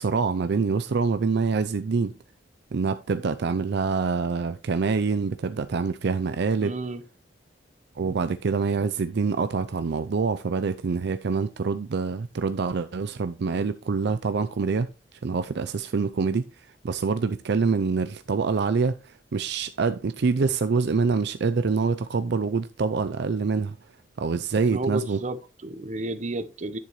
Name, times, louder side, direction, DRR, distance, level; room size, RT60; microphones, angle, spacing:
voice 1, 0.0-2.1 2.7-6.8 8.0-23.8 24.2-25.2, right 4 dB, 65° right, 0.5 m, -26 dB
voice 2, 6.6-7.0 24.7-26.8, right 2 dB, 40° right, 0.8 m, -31 dB
10.5 x 6.6 x 3.1 m
head